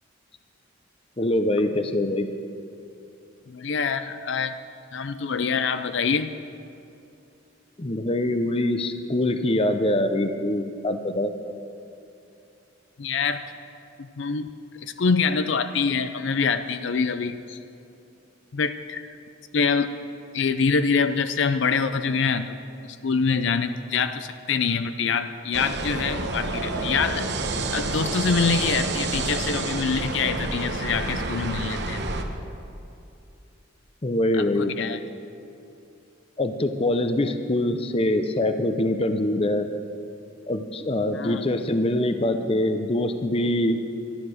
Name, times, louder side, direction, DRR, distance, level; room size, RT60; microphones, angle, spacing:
voice 1, 1.2-2.3 7.8-11.3 34.0-34.7 36.4-39.7 40.5-43.8, left 1 dB, 30° left, 8 dB, 0.7 m, -24 dB
voice 2, 3.5-4.5 4.9-6.3 13.0-13.4 14.0-17.6 18.5-19.1 19.5-19.9 20.3-22.6 23.0-27.3 27.7-32.0 34.4-35.0 41.1-41.4, left 5 dB, 65° left, 10 dB, 0.5 m, -25 dB
sound 1, 25.5-32.2, right 3 dB, 60° right, 1.0 m, -29 dB
12.5 x 12.0 x 6.4 m, 2.7 s
head